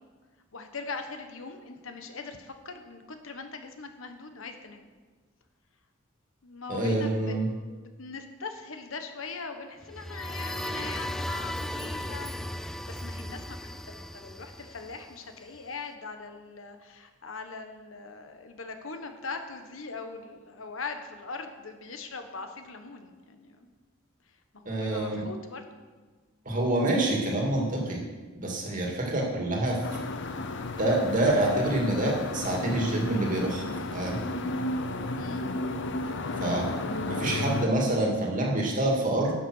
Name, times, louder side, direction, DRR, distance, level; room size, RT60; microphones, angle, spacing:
voice 1, 0.5-4.9 6.4-23.7 24.3-25.7 35.2-35.5, left 4 dB, 80° left, 6 dB, 1.2 m, -41 dB
voice 2, 6.7-7.5 24.7-25.2 26.5-28.0 28.4-29.8 30.8-33.6 33.9-34.2 36.4-36.7 37.1-39.3, right 1 dB, 40° right, -1 dB, 2.3 m, -26 dB
sound 1, 9.8-15.6, left 1 dB, ahead, 0.3 m, -36 dB
sound 2, 29.8-37.7, left 2 dB, 60° left, 0.7 m, -33 dB
11.0 x 7.5 x 6.3 m, 1.4 s
head